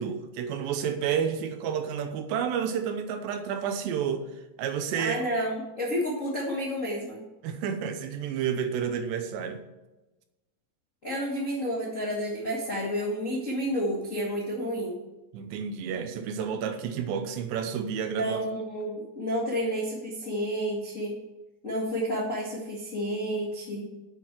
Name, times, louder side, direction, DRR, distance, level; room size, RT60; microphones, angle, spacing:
voice 1, 0.0-4.3 4.6-5.2 7.4-9.6 15.3-18.4, right 7 dB, 80° right, 7 dB, 3.0 m, -30 dB
voice 2, 4.9-7.2 11.0-15.0 18.1-21.2 21.6-23.8, equal, 55° left, -4 dB, 0.8 m, -30 dB
8.1 x 6.9 x 7.5 m, 1.1 s
omnidirectional pair, 5.1 m